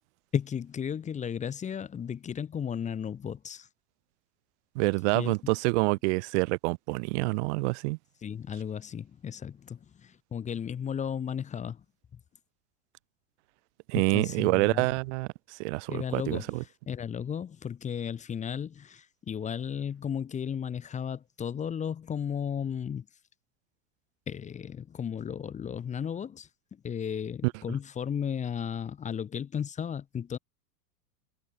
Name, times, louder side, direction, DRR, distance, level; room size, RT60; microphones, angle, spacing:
voice 1, 0.3-3.7 5.1-5.5 8.2-11.8 12.1-12.2 13.9-14.9 15.9-23.1 24.3-30.4, left 8 dB, 15° left, 0.7 m, -34 dB
voice 2, 4.8-8.0 13.9-16.6, right 27 dB, 50° right, 0.6 m, -27 dB
hypercardioid pair, 100°, 47 cm